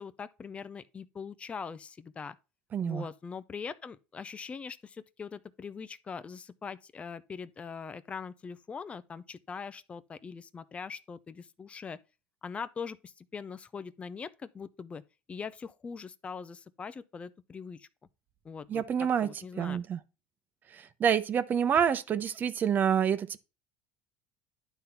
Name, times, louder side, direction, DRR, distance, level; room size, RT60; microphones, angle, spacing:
voice 1, 0.0-2.4 2.8-12.0 12.4-15.0 15.3-17.9 18.4-19.8, left 5 dB, 25° left, 0.6 m, -42 dB
voice 2, 2.7-3.1 18.7-19.3 19.6-20.0 20.7-23.4, right 8 dB, 40° right, 0.9 m, -27 dB
10.5 x 3.8 x 5.8 m
supercardioid pair, 100°, 5 cm